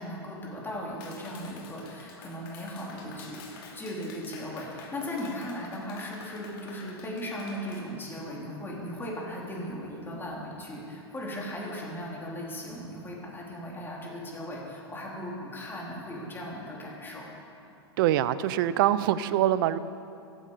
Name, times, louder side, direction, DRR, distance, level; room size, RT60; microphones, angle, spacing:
voice 1, 0.0-17.3, equal, 15° left, -4 dB, 4.0 m, -37 dB
Clapping, 1.0-7.8, left 5 dB, 55° left, 2.7 m, -48 dB
voice 2, 18.0-19.8, right 12 dB, 55° right, 15 dB, 0.7 m, -24 dB
15.0 x 14.5 x 5.1 m, 2.6 s
figure-of-eight pair, 95°, 14 cm